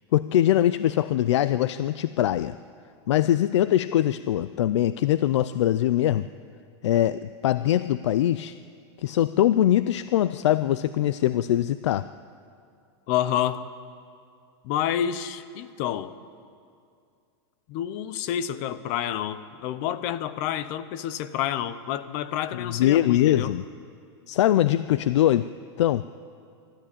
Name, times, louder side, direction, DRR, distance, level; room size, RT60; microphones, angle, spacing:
voice 1, 0.1-2.6 3.1-6.3 6.8-8.6 9.0-12.1 22.5-23.6 24.3-25.5 25.8-26.0, left 12 dB, 85° left, 15 dB, 0.5 m, -22 dB
voice 2, 13.1-13.6 14.6-16.1 17.7-23.5, left 10 dB, 35° left, 14 dB, 0.8 m, -29 dB
23.5 x 13.0 x 8.5 m, 2.3 s
supercardioid pair, 170°, 14 cm